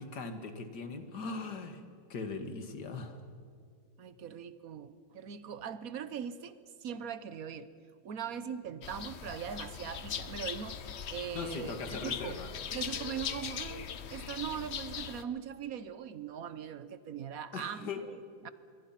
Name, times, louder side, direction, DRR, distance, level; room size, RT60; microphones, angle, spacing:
voice 1, 0.0-1.8 2.1-3.2 11.3-12.5 17.5-18.0, left 4 dB, 50° left, 7 dB, 2.3 m, -39 dB
voice 2, 4.0-7.7 8.0-12.4 12.7-18.5, right 8 dB, 55° right, 14 dB, 1.1 m, -41 dB
sound 1, 8.8-15.2, left 8 dB, 85° left, 0.6 m, -40 dB
26.5 x 23.0 x 5.9 m, 2.3 s
omnidirectional pair, 2.3 m